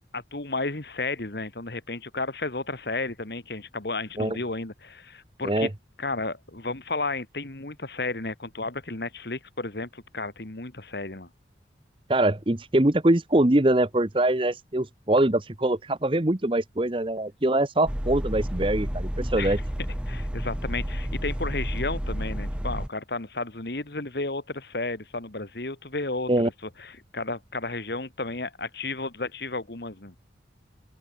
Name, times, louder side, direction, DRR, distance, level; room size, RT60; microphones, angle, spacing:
voice 1, 0.1-5.7 6.0-11.3 19.4-19.6 20.1-26.3 26.8-30.1, left 3 dB, 60° left, 1.9 m, -33 dB
voice 2, 12.1-19.6 26.3-26.5, right 1 dB, 30° right, 1.0 m, -23 dB
sound 1, 17.9-22.9, equal, 5° right, 0.8 m, -30 dB
open air
head